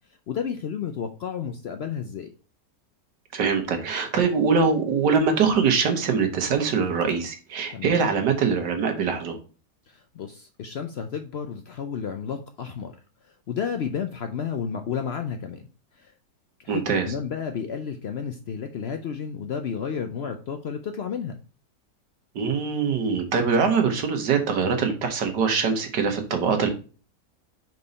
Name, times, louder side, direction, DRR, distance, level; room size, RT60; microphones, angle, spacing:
voice 1, 0.3-2.3 7.7-8.0 9.9-12.9 13.5-15.6 16.0-16.1 16.6-21.3, left 7 dB, 80° left, 6 dB, 0.5 m, -31 dB
voice 2, 3.3-9.4 16.7-17.1 22.4-26.7, right 5 dB, 85° right, 5 dB, 1.8 m, -23 dB
5.4 x 4.6 x 4.0 m, 0.36 s
omnidirectional pair, 1.8 m